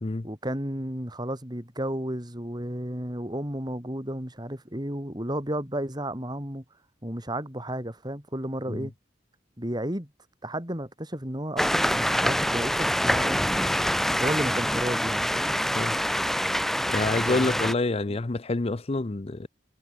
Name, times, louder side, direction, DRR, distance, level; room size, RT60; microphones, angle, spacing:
voice 1, 0.2-6.6 7.0-8.9 9.6-10.1 10.4-13.4 14.2-15.5 17.3-17.6, right 1 dB, 25° right, 6.2 m, -32 dB
sound 1, 11.6-17.7, equal, ahead, 1.8 m, -25 dB
voice 2, 16.9-19.5, left 2 dB, 35° left, 0.6 m, -27 dB
head